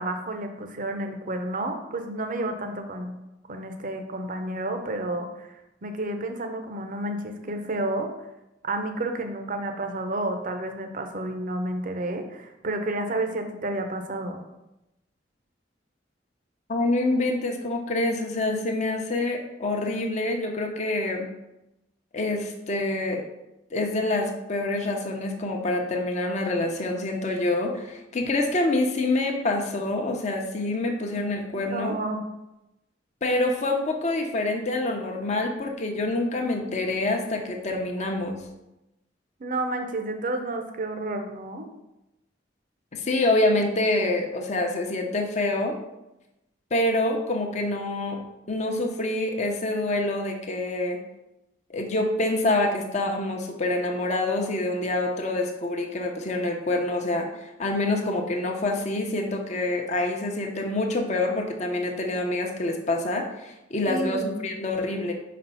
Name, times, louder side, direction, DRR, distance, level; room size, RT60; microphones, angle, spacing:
voice 1, 0.0-3.1 3.5-5.6 5.8-8.1 8.6-14.4 31.5-32.2 39.4-41.7 63.9-64.3, right 2 dB, 45° right, 5 dB, 0.7 m, -30 dB
voice 2, 16.7-21.3 22.1-23.2 23.7-32.0 33.2-38.4 42.9-45.7 46.7-48.2 48.5-51.0 51.7-65.1, left 2 dB, 40° left, 2 dB, 0.7 m, -26 dB
5.1 x 4.2 x 5.5 m, 0.93 s
head